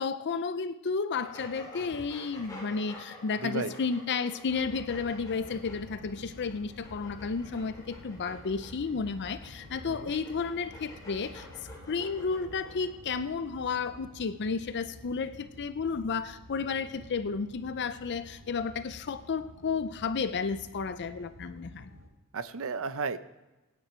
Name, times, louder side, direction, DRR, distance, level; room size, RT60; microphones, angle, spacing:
voice 1, 0.0-11.5 11.9-21.9, left 5 dB, 50° left, 12 dB, 0.5 m, -32 dB
sound 1, 1.1-12.9, left 1 dB, 15° left, 3.5 m, -49 dB
voice 2, 3.4-3.7 6.2-6.3 9.8-10.1 22.3-23.2, right 4 dB, 65° right, 13 dB, 0.7 m, -34 dB
sound 2, 4.5-22.1, equal, 90° right, 4.7 m, -50 dB
24.5 x 9.3 x 4.4 m, 1.1 s
head